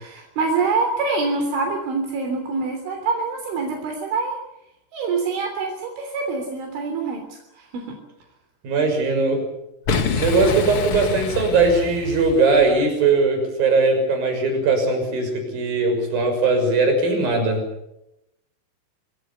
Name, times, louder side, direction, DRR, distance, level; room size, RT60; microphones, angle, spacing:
voice 1, 0.0-4.4 4.9-8.0, right 4 dB, 70° right, 3 dB, 5.7 m, -25 dB
voice 2, 8.6-9.4 10.1-17.6, right 3 dB, 45° right, 4 dB, 7.9 m, -19 dB
Boom, 9.8-12.8, left 4 dB, 70° left, 1.3 m, -26 dB
26.5 x 21.5 x 7.0 m, 0.85 s
omnidirectional pair, 5.7 m